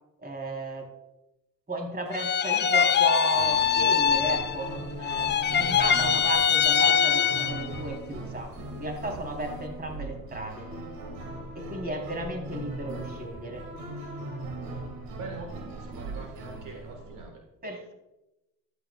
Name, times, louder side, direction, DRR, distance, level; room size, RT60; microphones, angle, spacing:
voice 1, 0.2-0.9 1.7-10.7 11.6-13.7 17.6-17.9, right 2 dB, 25° right, 2 dB, 3.8 m, -34 dB
sound 1, 2.1-4.8 5.0-7.8, left 8 dB, 30° left, 0.6 m, -23 dB
sound 2, 3.3-17.2, right 2 dB, 85° right, 2.1 m, -39 dB
voice 2, 15.1-17.4, right 4 dB, 65° right, 3 dB, 1.7 m, -43 dB
14.0 x 11.5 x 2.4 m, 0.92 s
supercardioid pair, 80°, 34 cm